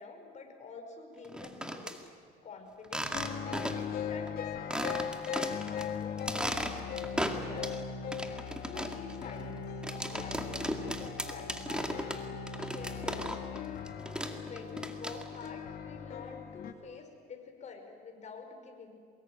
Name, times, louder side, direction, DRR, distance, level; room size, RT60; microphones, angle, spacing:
voice 1, 0.0-2.1 2.4-3.1 3.7-4.9 5.7-7.8 8.7-9.7 10.0-12.0 12.7-13.4 14.4-18.9, left 4 dB, 45° left, 4 dB, 5.2 m, -48 dB
sound 1, 1.2-2.0 2.8-4.0 4.3-4.4 4.7-5.8 6.2-7.8 8.1-13.6 13.9-15.5, right 1 dB, 5° right, 2.2 m, -36 dB
sound 2, 3.1-16.7, left 7 dB, 65° left, 2.1 m, -39 dB
24.0 x 22.0 x 9.2 m, 2.3 s
cardioid pair, 110°, 17 cm